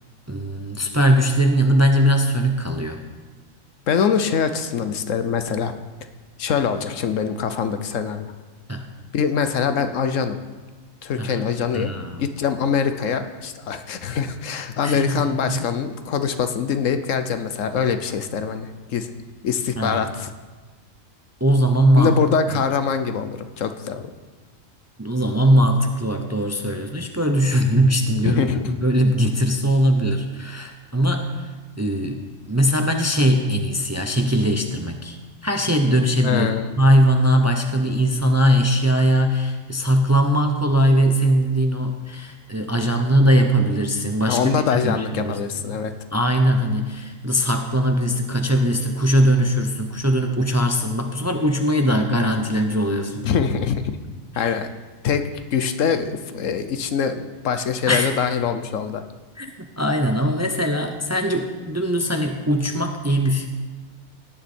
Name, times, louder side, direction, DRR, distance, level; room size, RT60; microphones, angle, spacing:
voice 1, 0.3-3.0 8.7-8.9 11.2-11.4 11.7-12.2 14.8-15.2 15.5-15.6 19.8-20.0 21.4-22.2 25.0-31.5 31.8-32.2 32.5-36.5 36.8-45.4 45.7-45.8 46.1-53.3 54.3-54.6 57.9-58.1 59.4-63.5, equal, 15° right, 5 dB, 0.7 m, -20 dB
voice 2, 3.9-5.7 6.4-8.3 9.1-10.4 11.0-11.9 12.2-19.1 19.4-20.3 22.0-24.1 28.2-28.7 36.2-36.7 44.3-45.9 53.2-54.0 54.4-54.7 55.0-59.0, left 6 dB, 75° left, 9 dB, 1.2 m, -23 dB
17.5 x 10.0 x 4.4 m, 1.3 s
omnidirectional pair, 1.3 m